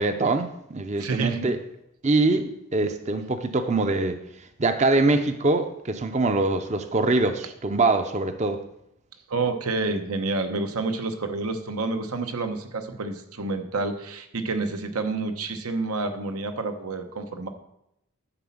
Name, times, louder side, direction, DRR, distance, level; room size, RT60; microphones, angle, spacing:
voice 1, 0.0-1.6 2.0-4.2 4.6-8.6, right 2 dB, 30° right, 8 dB, 0.5 m, -23 dB
voice 2, 1.0-1.5 9.3-17.5, right 3 dB, 85° right, 6 dB, 1.0 m, -29 dB
10.0 x 4.2 x 7.1 m, 0.80 s
head